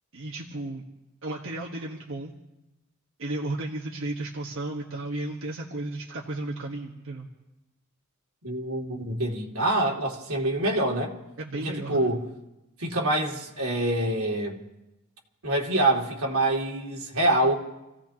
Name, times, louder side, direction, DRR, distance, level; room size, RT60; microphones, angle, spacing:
voice 1, 0.1-0.8 1.2-2.3 3.2-7.3 11.4-12.1, right 2 dB, 65° right, -3 dB, 1.5 m, -34 dB
voice 2, 8.4-11.1 11.6-12.2 12.8-14.6 15.4-17.6, right 1 dB, 85° right, -1 dB, 2.6 m, -25 dB
29.0 x 16.5 x 2.9 m, 0.98 s
head